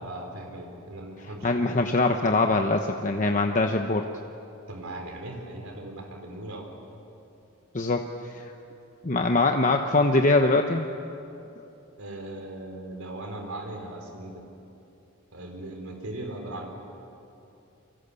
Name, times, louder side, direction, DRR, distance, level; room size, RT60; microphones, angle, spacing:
voice 1, 0.0-1.7 4.7-6.7 12.0-14.4 15.3-16.7, right 1 dB, 85° right, 2 dB, 4.1 m, -38 dB
voice 2, 1.2-4.1 7.7-8.0 8.3-8.5 9.0-10.9, left 2 dB, 40° left, 4 dB, 1.0 m, -23 dB
29.5 x 25.0 x 7.0 m, 2.8 s
head